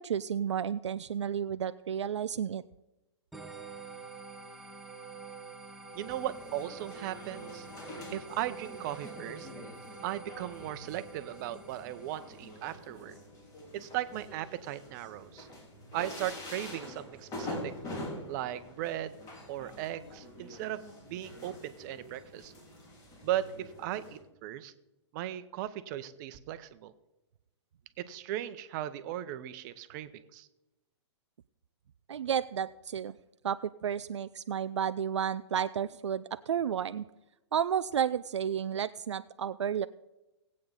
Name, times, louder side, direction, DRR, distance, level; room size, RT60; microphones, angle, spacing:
voice 1, 0.0-2.6 32.1-33.2 33.4-37.0 37.5-39.9, right 8 dB, 75° right, 13 dB, 0.4 m, -32 dB
sound 1, 3.3-12.7, right 5 dB, ahead, 1.2 m, -47 dB
sound 2, 5.9-24.2, left 1 dB, 25° left, 3.6 m, -46 dB
voice 2, 5.9-7.7 8.1-9.5 10.0-13.1 13.7-15.5 15.9-17.7 18.3-19.2 19.5-20.8 21.1-22.5 23.2-24.7 25.1-26.9 28.0-30.5, right 12 dB, 40° right, 13 dB, 0.9 m, -37 dB
18.0 x 8.6 x 4.0 m, 0.99 s
hypercardioid pair, 120°, 15 cm